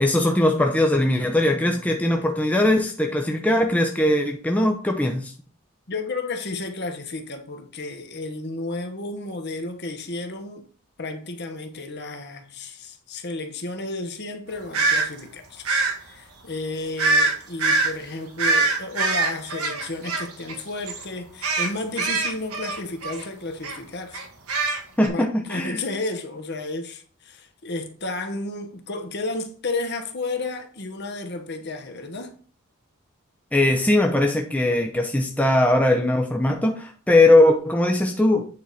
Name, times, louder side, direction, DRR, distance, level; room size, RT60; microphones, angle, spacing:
voice 1, 0.0-5.3 25.0-25.8 33.5-38.5, left 1 dB, 5° left, 0.7 m, -20 dB
voice 2, 5.9-10.7 11.0-15.6 16.0-24.2 25.1-32.4, left 2 dB, 50° left, 1.2 m, -32 dB
sound 1, 14.7-15.1 15.7-15.9 17.0-17.3 17.6-17.9 18.4-20.6 20.9-21.1 21.4-23.3 23.6-23.8 24.1-25.1, right 3 dB, 90° right, 1.7 m, -23 dB
8.8 x 4.7 x 4.1 m
head